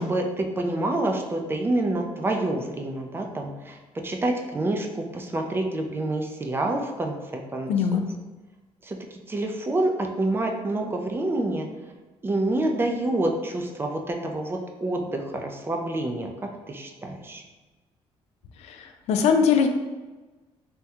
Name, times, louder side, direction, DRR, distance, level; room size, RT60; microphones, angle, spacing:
voice 1, 0.0-3.8 4.0-7.9 8.8-9.0 9.3-11.7 12.2-16.3 16.7-17.4, right 2 dB, 20° right, 3 dB, 0.4 m, -27 dB
voice 2, 7.7-8.0 19.1-19.7, left 6 dB, 75° left, 6 dB, 0.4 m, -20 dB
3.5 x 2.2 x 2.8 m, 1.2 s
cardioid pair, 100°, 11 cm